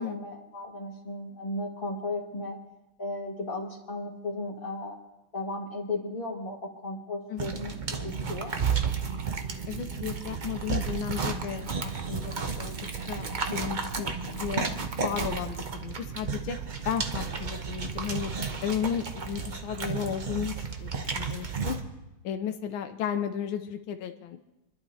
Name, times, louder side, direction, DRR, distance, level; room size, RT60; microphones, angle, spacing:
voice 1, 0.0-2.6 3.0-5.0 5.3-8.6, left 2 dB, 25° left, -1 dB, 2.0 m, -35 dB
sound 1, 7.4-21.8, right 5 dB, 80° right, 0.4 m, -32 dB
voice 2, 9.7-14.7 15.0-16.6 16.8-18.3 18.6-21.8 22.2-24.4, left 8 dB, 85° left, 7 dB, 1.5 m, -34 dB
29.0 x 11.5 x 2.8 m, 0.97 s
omnidirectional pair, 2.2 m